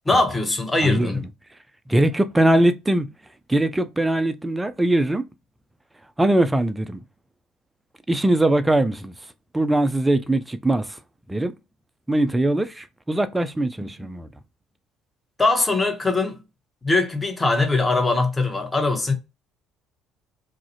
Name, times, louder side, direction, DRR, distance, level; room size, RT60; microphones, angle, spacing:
voice 1, 0.1-1.2 15.4-16.4 16.8-19.1, left 3 dB, 20° left, 0.8 m, -21 dB
voice 2, 0.8-1.3 1.9-3.1 3.5-5.3 6.2-7.0 8.1-9.1 9.5-11.0 11.3-11.5 12.1-14.3, right 1 dB, 15° right, 0.4 m, -21 dB
2.4 x 2.0 x 2.6 m
hypercardioid pair, 55°, 0 cm